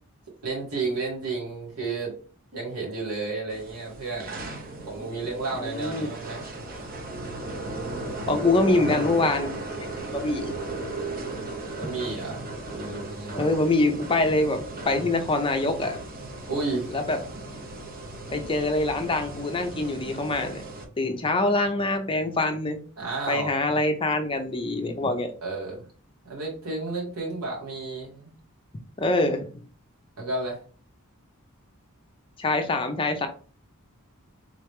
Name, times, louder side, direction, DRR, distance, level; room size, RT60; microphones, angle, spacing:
voice 1, 0.4-2.2 2.5-4.4 4.9-6.4 11.8-13.5 16.5-16.9 23.0-23.5 25.4-25.9 26.2-28.3 30.2-30.6, right 3 dB, 80° right, -3 dB, 2.1 m, -32 dB
sound 1, 3.5-20.8, right 2 dB, 40° right, 0.7 m, -36 dB
voice 2, 5.6-6.1 8.3-10.5 13.4-16.0 16.9-17.4 18.3-20.6 21.0-22.8 23.3-25.3 29.0-29.5 32.4-33.3, left 2 dB, 25° left, 6 dB, 0.5 m, -25 dB
3.8 x 3.2 x 3.2 m, 0.40 s
head